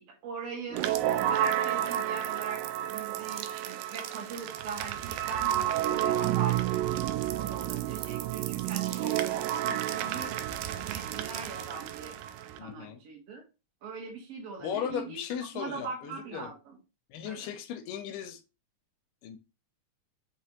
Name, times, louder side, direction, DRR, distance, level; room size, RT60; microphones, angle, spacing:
voice 1, 0.0-2.6 2.9-9.2 9.6-10.4 10.8-12.2 12.6-13.4 13.8-16.6 17.2-17.5, right 5 dB, 60° right, 2.0 m, -41 dB
sound 1, 0.7-12.6, right 12 dB, 85° right, 2.1 m, -31 dB
voice 2, 12.6-13.0 14.6-16.5 17.1-18.4 19.2-19.4, left 8 dB, 85° left, 2.2 m, -37 dB
5.4 x 3.3 x 2.8 m
omnidirectional pair, 3.8 m